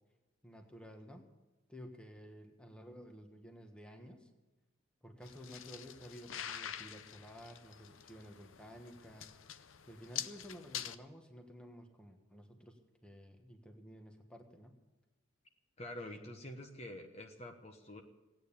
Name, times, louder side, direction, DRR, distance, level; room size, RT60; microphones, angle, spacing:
voice 1, 0.4-1.3 1.7-4.3 5.0-9.4 9.9-14.8 15.9-16.3, equal, 5° left, 4 dB, 1.4 m, -53 dB
sound 1, 5.2-11.0, left 10 dB, 90° left, 0.7 m, -46 dB
voice 2, 15.8-18.0, left 1 dB, 35° left, 4 dB, 1.2 m, -47 dB
17.0 x 8.9 x 8.6 m, 1.2 s
head